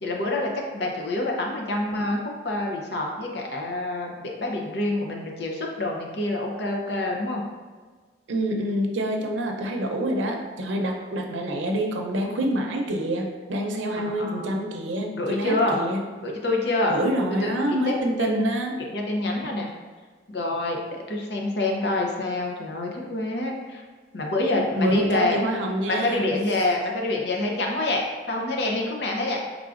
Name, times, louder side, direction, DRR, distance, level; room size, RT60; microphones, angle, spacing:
voice 1, 0.0-7.4 14.0-14.5 15.1-15.8 16.2-17.0 17.4-17.5 17.9-18.0 18.2-18.5 18.9-19.7 20.3-23.8 24.1-25.4 25.8-28.0 28.3-29.4, left 2 dB, 65° left, 0 dB, 0.7 m, -27 dB
voice 2, 8.3-16.0 16.9-18.8 24.8-26.3, right 1 dB, 85° right, 2 dB, 0.6 m, -26 dB
4.7 x 3.6 x 2.5 m, 1.4 s
head